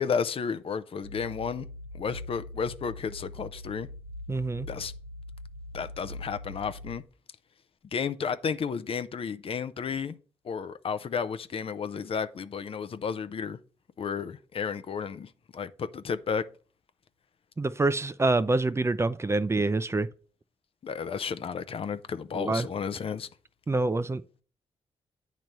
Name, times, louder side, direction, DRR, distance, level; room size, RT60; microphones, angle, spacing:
voice 1, 0.0-1.7 1.9-3.9 4.7-4.9 5.7-7.0 7.9-10.1 10.4-13.6 14.0-16.5 20.8-23.3, left 6 dB, 50° left, 0.6 m, -32 dB
sound 1, 1.0-7.0, left 1 dB, 90° right, 1.2 m, -42 dB
voice 2, 4.3-4.7 17.6-20.1 22.3-22.7 23.7-24.2, right 2 dB, 20° right, 0.5 m, -26 dB
8.8 x 3.1 x 5.3 m
supercardioid pair, 55°, 12 cm